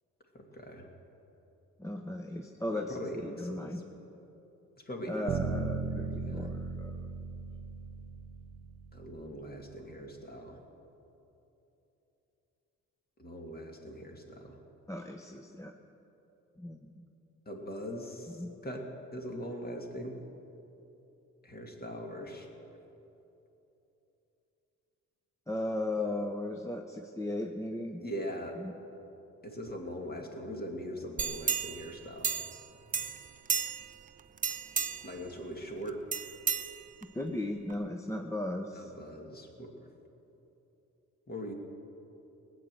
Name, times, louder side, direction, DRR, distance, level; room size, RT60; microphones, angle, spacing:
voice 1, 0.3-0.9 2.3-2.4 2.7-3.8 4.8-5.3 5.7-6.5 8.9-10.6 13.2-14.6 17.5-18.8 19.1-20.2 21.4-22.5 28.0-28.6 29.4-32.4 35.0-36.1 38.7-39.7 41.3-41.5, equal, 30° left, 1 dB, 2.5 m, -41 dB
voice 2, 1.8-3.8 5.1-7.1 14.9-15.7 16.6-16.9 18.4-18.5 25.5-28.0 28.6-28.7 37.1-38.9, left 1 dB, 10° left, 3 dB, 0.8 m, -36 dB
sound 1, 5.3-9.4, right 5 dB, 55° right, 1.0 m, -37 dB
sound 2, 31.2-32.7 32.9-34.0 34.4-35.2 36.1-37.2 37.7-37.8, right 6 dB, 25° right, 0.6 m, -33 dB
18.5 x 8.3 x 7.7 m, 3.0 s
cardioid pair, 90°, 30 cm